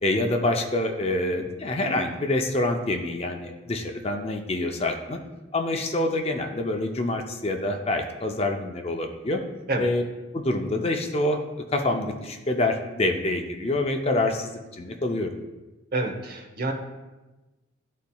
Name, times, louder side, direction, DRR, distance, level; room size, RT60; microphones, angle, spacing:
voice 1, 0.0-5.2 5.5-9.4 9.8-10.0 10.3-11.4 11.7-15.3, left 2 dB, 30° left, 4 dB, 0.5 m, -26 dB
voice 2, 15.9-16.7, right 2 dB, 50° right, 4 dB, 0.8 m, -28 dB
12.0 x 4.1 x 2.3 m, 1.1 s
head